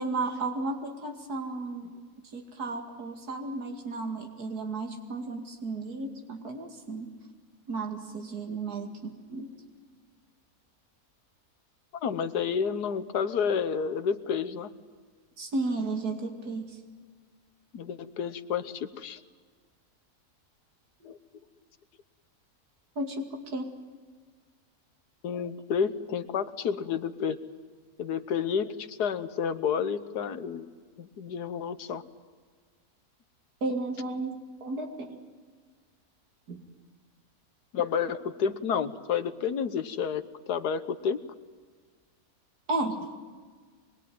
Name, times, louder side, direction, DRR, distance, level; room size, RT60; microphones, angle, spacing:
voice 1, 0.0-1.9 2.3-7.1 7.7-9.5 15.4-16.8 23.0-23.7 28.1-28.2 33.6-35.2 36.5-36.6 42.7-43.0, right 2 dB, 75° right, 4 dB, 2.8 m, -33 dB
voice 2, 11.9-14.7 17.7-19.2 21.0-21.4 25.2-27.4 28.0-30.7 31.0-32.0 37.7-41.2, left 7 dB, 90° left, 11 dB, 1.7 m, -30 dB
25.0 x 22.0 x 9.3 m, 1.5 s
omnidirectional pair, 1.7 m